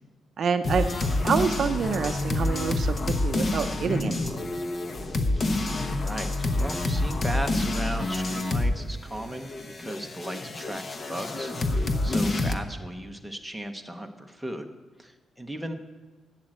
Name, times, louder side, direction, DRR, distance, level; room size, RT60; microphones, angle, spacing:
voice 1, 0.4-0.9 1.2-4.2, right 6 dB, 45° right, 8 dB, 0.6 m, -27 dB
sound 1, 0.6-8.8 9.1-12.6, left 2 dB, 30° left, 0.9 m, -27 dB
voice 2, 6.0-9.5 9.8-10.8 11.1-14.7 15.0-15.7, right 1 dB, ahead, 3 dB, 0.9 m, -36 dB
11.5 x 8.9 x 7.6 m, 1.2 s
cardioid pair, 165°, 0 cm